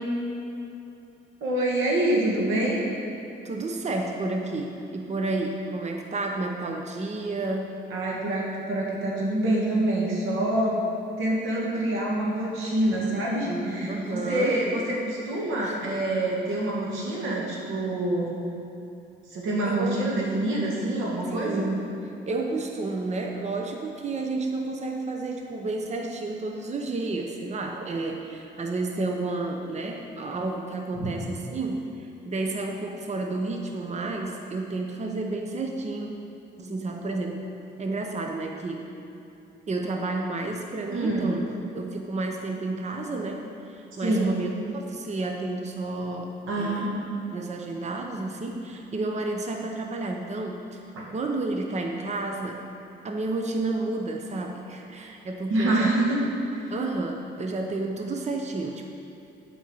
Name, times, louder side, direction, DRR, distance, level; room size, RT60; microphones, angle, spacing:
voice 1, 1.4-2.8 7.9-10.8 11.2-18.4 19.3-21.7 30.9-31.1 40.9-41.4 44.0-44.4 46.5-46.9 55.5-56.2 56.5-56.7, right 1 dB, 90° right, -3 dB, 2.1 m, -26 dB
voice 2, 3.4-7.8 13.9-14.6 15.6-15.8 19.6-20.0 21.3-21.9 22.3-36.1 36.6-37.4 37.8-38.9 39.7-41.4 41.7-46.9 47.3-50.8 51.1-52.7 53.0-56.0 56.7-58.9, right 2 dB, 35° right, 2 dB, 0.9 m, -31 dB
9.2 x 5.5 x 7.1 m, 2.8 s
cardioid pair, 90°, 20 cm